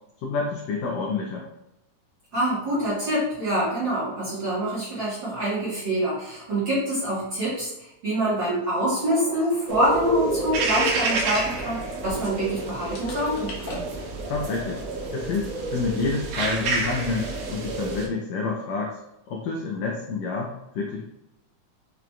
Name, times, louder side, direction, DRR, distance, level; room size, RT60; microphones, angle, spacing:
voice 1, 0.2-1.5 14.3-14.8 15.1-19.0 19.3-21.0, left 4 dB, 85° left, -1 dB, 1.5 m, -28 dB
voice 2, 2.3-13.5, right 1 dB, 50° right, -9 dB, 1.4 m, -26 dB
sound 1, 8.8-12.6 13.0-13.9, left 2 dB, 70° left, 2.1 m, -41 dB
sound 2, 9.7-18.1, right 2 dB, 80° right, 2.2 m, -29 dB
5.9 x 2.5 x 2.3 m, 0.85 s
omnidirectional pair, 3.6 m